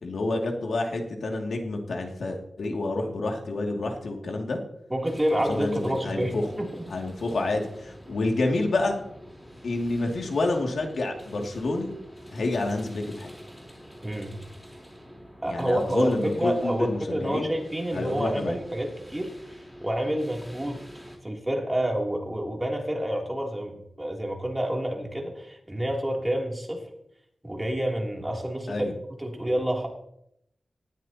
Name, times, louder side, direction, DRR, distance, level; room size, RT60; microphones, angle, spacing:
voice 1, 0.0-4.6 5.5-6.4 6.9-9.0 9.6-11.9 12.3-13.3 15.5-17.5 17.9-18.6 28.7-28.9, left 2 dB, 80° left, 1 dB, 2.5 m, -28 dB
voice 2, 4.9-6.9 14.0-14.3 15.4-19.3 19.8-20.8 21.2-26.8 27.4-28.9 29.2-29.9, right 1 dB, 15° right, 0 dB, 3.2 m, -28 dB
sound 1, 5.0-21.2, equal, 5° left, 4.0 m, -47 dB
19.0 x 13.5 x 3.0 m, 0.75 s
wide cardioid pair, 90°, 0 cm